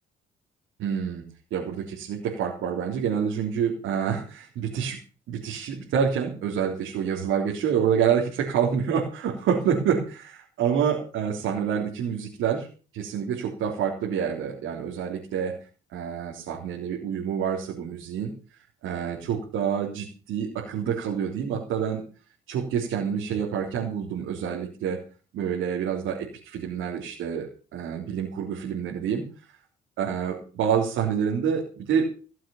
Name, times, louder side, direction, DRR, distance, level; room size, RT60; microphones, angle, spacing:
voice 1, 0.8-5.0 5.3-12.7 12.9-15.6 15.9-18.3 18.8-22.0 22.5-25.0 25.3-29.2 30.0-32.1, right 7 dB, 85° right, -3 dB, 3.6 m, -27 dB
17.5 x 7.7 x 7.1 m, 0.38 s
cardioid pair, 90°, 20 cm